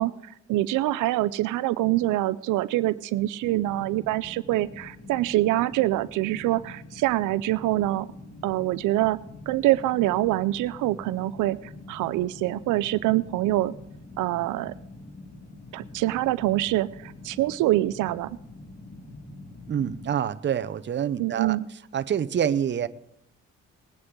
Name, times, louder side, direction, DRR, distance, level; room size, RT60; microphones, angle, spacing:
voice 1, 0.0-8.1 8.4-9.2 9.5-13.7 14.2-14.7 15.7-18.3 21.2-21.7, right 16 dB, 85° right, 16 dB, 0.5 m, -25 dB
sound 1, 3.4-20.1, left 2 dB, 30° left, 1.9 m, -45 dB
voice 2, 19.7-21.6 21.9-22.9, right 9 dB, 40° right, 12 dB, 0.6 m, -26 dB
19.5 x 9.7 x 3.7 m, 0.77 s
cardioid pair, 90°, 30 cm